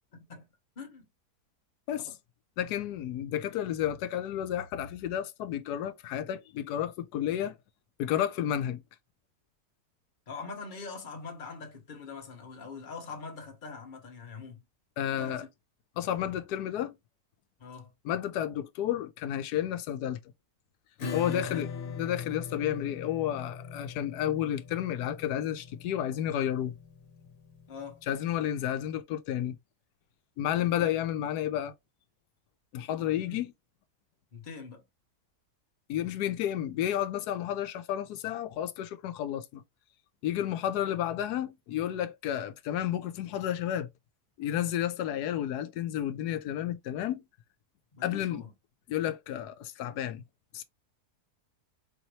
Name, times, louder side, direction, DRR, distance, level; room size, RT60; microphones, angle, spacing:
voice 1, 0.1-0.4 0.8-1.0 2.0-2.1 10.3-14.6 15.2-15.5 17.6-17.9 21.2-21.6 27.7-28.0 30.8-30.9 33.2-33.4 34.3-34.8 47.9-48.5, left 4 dB, 35° left, 1.2 m, -43 dB
voice 2, 2.6-7.6 8.0-8.8 15.0-15.4 16.0-17.0 18.0-20.2 21.1-21.7 22.0-26.8 28.1-29.6 30.4-31.7 32.7-33.5 35.9-39.6 40.2-43.9 44.4-47.2 48.0-48.4 48.9-50.2 50.5-50.6, left 11 dB, 90° left, 1.2 m, -31 dB
Acoustic guitar / Strum, 21.0-28.2, left 5 dB, 65° left, 1.4 m, -41 dB
4.4 x 2.8 x 3.0 m
omnidirectional pair, 1.7 m